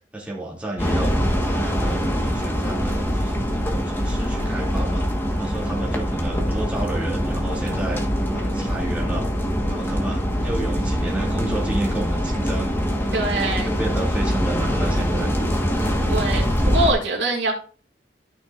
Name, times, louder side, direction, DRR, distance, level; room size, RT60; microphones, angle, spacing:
voice 1, 0.1-1.1 1.5-5.1 5.4-8.0 8.3-9.3 9.7-12.7 13.1-15.4, right 1 dB, 5° right, 2.5 m, -31 dB
sound 1, 0.8-16.9, equal, 15° left, 1.4 m, -23 dB
voice 2, 13.1-13.7 16.1-17.5, right 2 dB, 80° right, 2.5 m, -23 dB
13.0 x 6.0 x 2.5 m
head